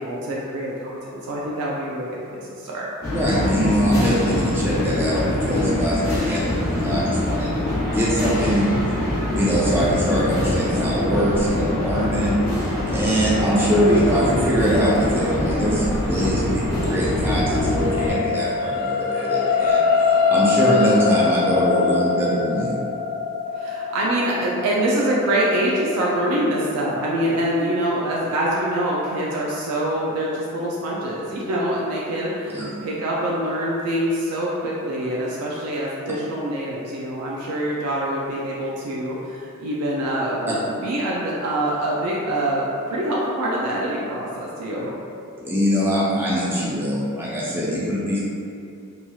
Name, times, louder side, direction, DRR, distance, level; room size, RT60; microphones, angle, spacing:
voice 1, 0.0-2.9 23.5-44.9, right 1 dB, 90° right, -5 dB, 0.4 m, -25 dB
sound 1, 3.0-18.1, left 1 dB, 15° left, 0.8 m, -24 dB
voice 2, 3.1-8.7 9.3-12.3 12.9-19.8 20.3-22.8 32.5-32.7 45.4-48.2, equal, 10° right, -7 dB, 0.4 m, -22 dB
sound 2, 16.6-29.0 29.5-29.7, left 5 dB, 70° left, 0.3 m, -24 dB
2.9 x 2.7 x 2.3 m, 2.5 s
head